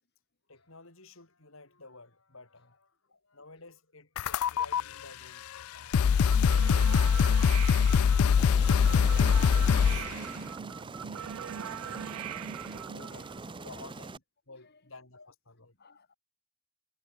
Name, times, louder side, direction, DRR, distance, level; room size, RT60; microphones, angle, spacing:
voice 1, 0.5-6.1 6.4-6.8 7.7-9.9 11.3-12.3 12.7-15.8, left 3 dB, 65° left, 4.4 m, -54 dB
sound 1, 4.2-4.8 5.6-5.7 5.9-10.1, left 7 dB, 80° left, 0.4 m, -23 dB
sound 2, 6.3-13.4, right 8 dB, 80° right, 0.4 m, -40 dB
Aircraft, 8.4-14.2, right 3 dB, 20° right, 0.6 m, -43 dB
voice 2, 10.8-11.4 12.7-13.2 14.6-14.7 15.8-16.1, left 5 dB, 50° left, 2.2 m, -63 dB
head